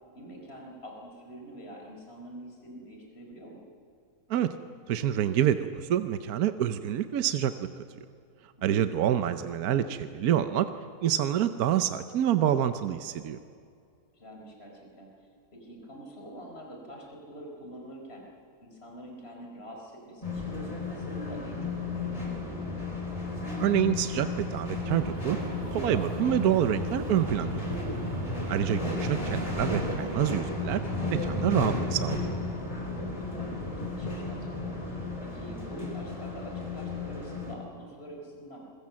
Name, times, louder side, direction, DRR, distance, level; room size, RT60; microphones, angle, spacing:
voice 1, 0.1-3.6 14.1-18.2 18.6-20.5 20.9-22.8 28.7-29.0 33.1-38.6, right 1 dB, 40° left, 0 dB, 4.6 m, -46 dB
voice 2, 4.9-7.7 8.6-10.7 11.0-13.4 23.6-25.4 25.7-27.6 28.5-30.8 31.1-32.4, right 10 dB, 75° right, 10 dB, 1.2 m, -27 dB
sound 1, 20.2-37.5, left 2 dB, 20° left, 3.7 m, -33 dB
sound 2, 24.9-30.4, right 4 dB, 35° right, 1.1 m, -41 dB
27.0 x 21.5 x 7.6 m, 2.4 s
omnidirectional pair, 1.6 m